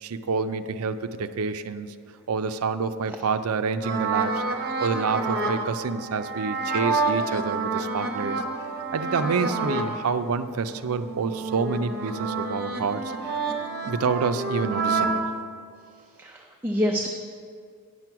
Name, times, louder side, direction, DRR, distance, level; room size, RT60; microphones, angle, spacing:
voice 1, 0.0-1.9 2.3-4.4 4.8-8.4 8.9-13.5 13.8-15.2, right 5 dB, 80° right, 10 dB, 0.5 m, -28 dB
sound 1, 3.8-10.0 10.4-15.2, right 3 dB, 45° right, 0.9 m, -28 dB
voice 2, 16.2-17.1, equal, 10° right, 0 dB, 0.4 m, -26 dB
9.7 x 6.1 x 5.8 m, 2.2 s
head